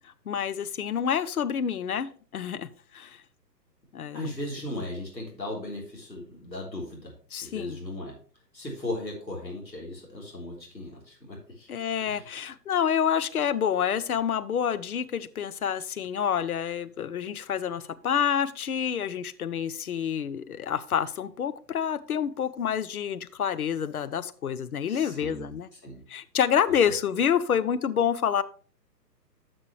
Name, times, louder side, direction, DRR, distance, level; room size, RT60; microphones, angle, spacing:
voice 1, 0.3-2.7 2.9-3.2 3.9-4.3 7.3-7.8 11.7-25.7 26.1-28.4, left 8 dB, 60° left, 13 dB, 0.7 m, -28 dB
voice 2, 4.1-7.1 7.4-8.2 8.5-11.7 12.0-12.3 24.9-26.0, left 1 dB, 85° left, -2 dB, 3.7 m, -37 dB
10.5 x 6.2 x 3.1 m, 0.42 s
figure-of-eight pair, 130°, 50 cm